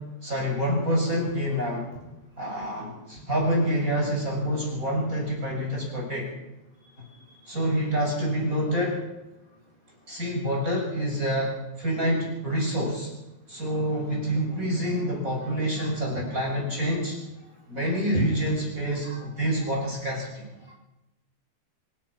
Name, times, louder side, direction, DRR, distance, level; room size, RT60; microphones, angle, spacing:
voice 1, 0.2-1.9 2.4-6.3 7.5-9.0 10.1-11.5 11.8-13.1 13.5-17.2 17.7-20.5, equal, 20° right, -2 dB, 7.5 m, -27 dB
voice 2, 15.8-16.2 19.0-19.3 20.7-20.8, equal, 20° left, -3 dB, 6.6 m, -45 dB
26.5 x 18.5 x 6.2 m, 0.96 s
omnidirectional pair, 4.4 m